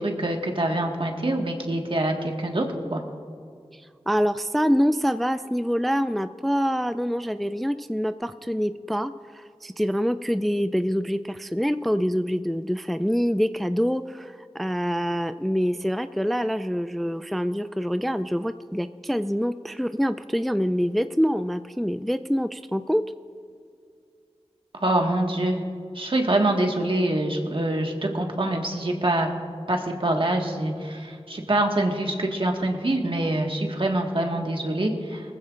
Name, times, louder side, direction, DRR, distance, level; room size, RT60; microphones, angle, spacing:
voice 1, 0.0-3.0 24.8-25.6 25.9-29.3 29.7-35.2, right 1 dB, 55° right, 2 dB, 1.6 m, -25 dB
voice 2, 3.7-23.0, equal, ahead, 11 dB, 0.3 m, -25 dB
19.5 x 15.0 x 2.5 m, 2.3 s
wide cardioid pair, 45°, 11 cm